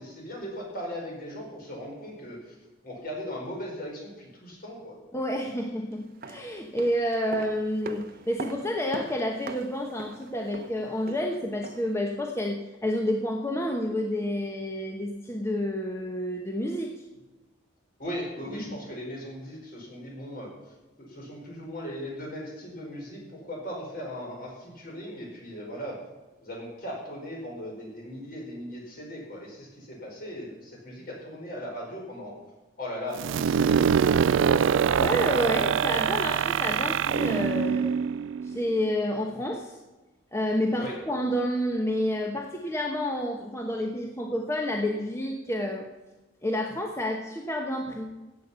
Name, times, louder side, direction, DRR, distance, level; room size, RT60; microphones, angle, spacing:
voice 1, 0.0-2.5 2.8-5.0 18.0-20.5 21.0-26.0 26.4-32.3 32.8-34.8 40.8-41.0, equal, 50° left, -1 dB, 5.0 m, -38 dB
voice 2, 5.1-16.9 18.5-18.8 35.0-37.9 38.4-39.8 40.3-45.9 46.4-48.1, left 1 dB, 15° left, 2 dB, 1.0 m, -29 dB
sound 1, 6.0-12.0 12.3-12.4, right 2 dB, 50° right, 0.9 m, -42 dB
sound 2, 33.2-38.9, right 7 dB, 85° right, 0.3 m, -24 dB
15.0 x 8.5 x 5.6 m, 1.1 s
head